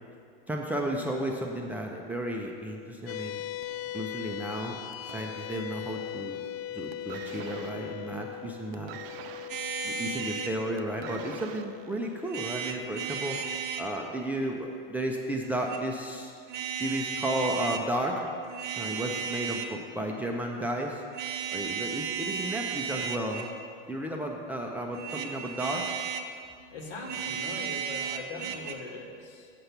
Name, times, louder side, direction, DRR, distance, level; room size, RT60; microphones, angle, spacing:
voice 1, 0.5-3.4 3.9-4.8 5.1-6.4 6.7-9.0 9.8-13.4 13.8-16.3 16.7-18.3 18.7-21.0 21.5-23.5 23.9-25.9, right 1 dB, 5° right, -1 dB, 0.5 m, -33 dB
sound 1, 3.1-15.7, left 12 dB, 80° left, 0.5 m, -41 dB
sound 2, 3.6-6.0 6.2-6.6 6.9-12.9 13.7-13.8, right 9 dB, 70° right, 0.6 m, -48 dB
sound 3, 9.5-10.6 12.3-13.9 15.4-15.8 16.5-17.8 18.4-19.8 21.1-23.6 24.9-26.3 27.0-28.7, right 7 dB, 35° right, 0.7 m, -34 dB
voice 2, 26.7-29.5, left 3 dB, 65° left, 1 dB, 1.7 m, -41 dB
6.8 x 6.4 x 5.8 m, 2.2 s
supercardioid pair, 120°, 30 cm